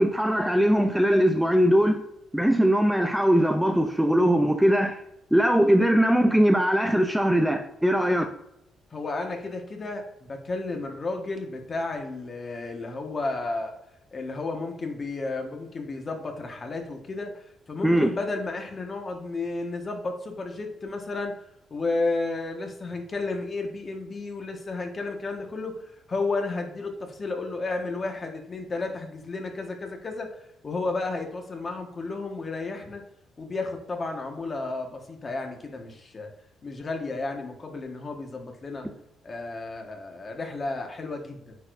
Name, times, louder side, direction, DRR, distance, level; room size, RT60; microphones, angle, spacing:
voice 1, 0.0-2.0 2.3-5.0 5.3-8.3 17.8-18.1, equal, 5° right, 0.5 m, -21 dB
voice 2, 8.9-13.7 14.1-21.4 21.7-33.0 33.4-36.3 36.6-38.9 39.2-41.5, left 3 dB, 35° left, 1.5 m, -32 dB
9.2 x 4.5 x 2.6 m
cardioid pair, 90°, 0 cm